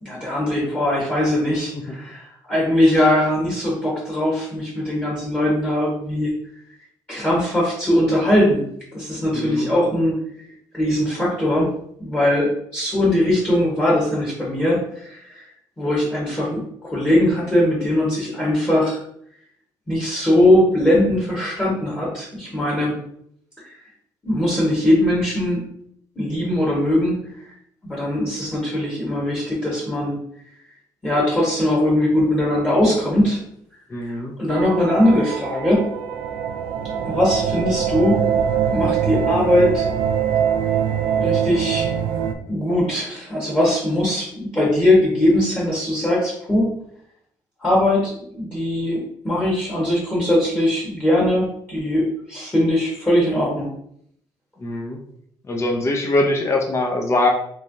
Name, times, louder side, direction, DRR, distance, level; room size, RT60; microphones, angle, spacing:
voice 1, 0.0-6.3 7.1-8.7 8.9-10.2 10.7-11.7 12.0-15.4 15.8-19.0 19.9-22.9 23.6-23.7 24.2-25.6 26.1-27.5 27.8-30.2 31.0-33.4 34.0-35.9 37.1-38.3 38.7-39.9 41.2-41.9 42.5-46.7 47.6-53.7, left 1 dB, 15° left, -6 dB, 1.3 m, -20 dB
voice 2, 9.3-9.7 33.9-34.3 54.6-55.0 55.5-57.3, left 2 dB, 30° left, 1 dB, 0.6 m, -22 dB
sound 1, 34.5-42.3, right 8 dB, 85° right, 0.4 m, -23 dB
3.4 x 3.2 x 2.7 m, 0.69 s
cardioid pair, 110°, 9 cm